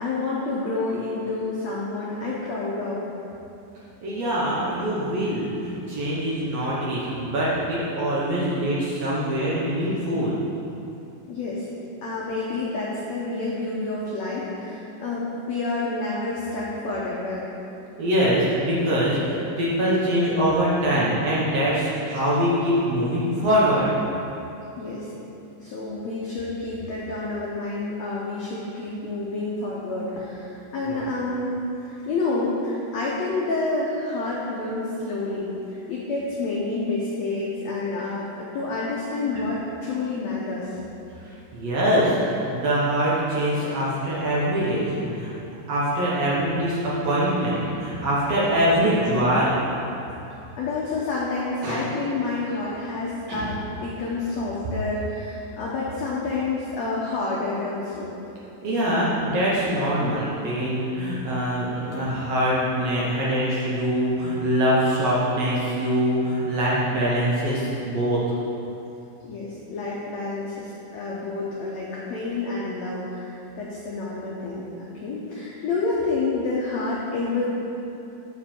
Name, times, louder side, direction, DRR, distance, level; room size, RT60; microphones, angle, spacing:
voice 1, 0.0-3.0 11.3-11.7 12.0-17.5 24.8-25.1 25.6-40.8 50.6-58.2 69.2-77.5, left 3 dB, 85° left, -5 dB, 1.5 m, -29 dB
voice 2, 4.0-10.4 18.0-23.9 30.8-31.0 41.5-45.3 45.7-49.6 51.6-51.8 53.3-53.4 58.6-68.2, equal, 70° right, -7 dB, 1.5 m, -23 dB
7.6 x 7.2 x 4.4 m, 2.8 s
omnidirectional pair, 4.3 m